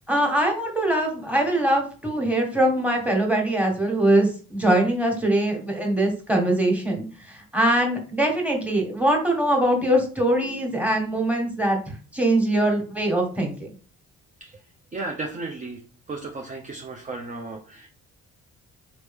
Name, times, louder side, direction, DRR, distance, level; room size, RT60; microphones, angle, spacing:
voice 1, 0.1-13.5, right 1 dB, 5° right, 1 dB, 1.6 m, -22 dB
voice 2, 14.9-15.8 16.1-17.9, right 3 dB, 25° right, 1 dB, 0.7 m, -34 dB
4.0 x 3.1 x 3.6 m, 0.38 s
cardioid pair, 90°, 30 cm